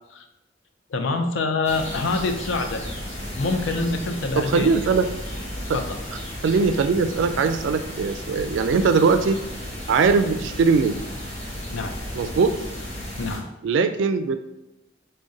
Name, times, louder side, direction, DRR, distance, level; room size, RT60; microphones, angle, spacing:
voice 1, 0.9-2.8 3.4-4.7 5.7-6.0 11.7-12.0 13.2-13.5, left 3 dB, 80° left, 5 dB, 0.5 m, -25 dB
sound 1, 1.6-13.4, equal, 35° left, 1.2 m, -34 dB
voice 2, 4.4-5.1 6.4-9.4 9.9-11.0 12.1-12.5 13.6-14.4, right 4 dB, 70° right, 10 dB, 0.3 m, -20 dB
3.8 x 2.2 x 3.7 m, 0.93 s
head